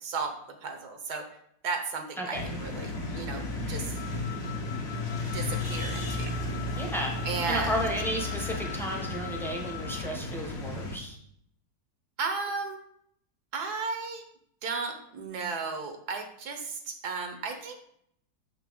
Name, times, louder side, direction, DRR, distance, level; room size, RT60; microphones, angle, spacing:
voice 1, 0.0-1.2 1.6-3.9 5.2-6.4 7.2-7.7 12.2-12.8 13.5-14.2 14.6-17.7, right 4 dB, 65° right, 5 dB, 1.3 m, -34 dB
voice 2, 2.2-2.5 6.8-7.2 7.5-11.2, equal, ahead, -1 dB, 0.8 m, -33 dB
sound 1, 2.3-11.0, left 2 dB, 45° left, 1.1 m, -34 dB
Wind instrument woodwind instrument, 3.9-10.2, left 11 dB, 85° left, 0.6 m, -43 dB
6.8 x 5.9 x 3.6 m, 0.71 s
omnidirectional pair, 2.0 m